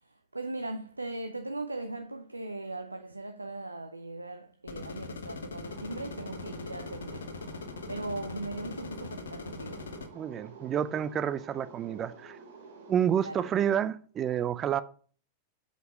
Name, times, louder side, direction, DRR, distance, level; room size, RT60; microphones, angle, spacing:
voice 1, 0.0-7.4 7.9-9.8 13.2-13.4, right 2 dB, 85° right, 0.6 m, -39 dB
sound 1, 4.7-10.1, left 4 dB, 65° left, 1.0 m, -41 dB
sound 2, 5.6-13.8, right 4 dB, 60° right, 2.4 m, -50 dB
voice 2, 10.1-12.4 12.9-14.8, right 9 dB, 25° right, 0.5 m, -29 dB
7.8 x 5.3 x 4.9 m
figure-of-eight pair, 90°, 0 cm